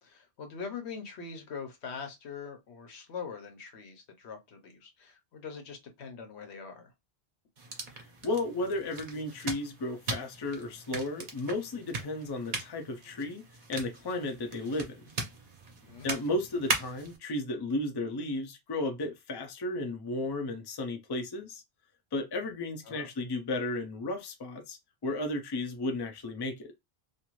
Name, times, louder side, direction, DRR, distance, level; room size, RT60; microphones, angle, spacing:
voice 1, 0.0-6.9 15.8-16.1 22.8-23.1, left 5 dB, 85° left, 1.1 m, -43 dB
sound 1, 7.6-17.2, right 3 dB, 50° right, 0.9 m, -39 dB
voice 2, 8.2-13.4 13.7-15.0 16.0-21.6 22.1-26.7, left 2 dB, 30° left, 0.5 m, -34 dB
2.5 x 2.4 x 3.0 m
omnidirectional pair, 1.1 m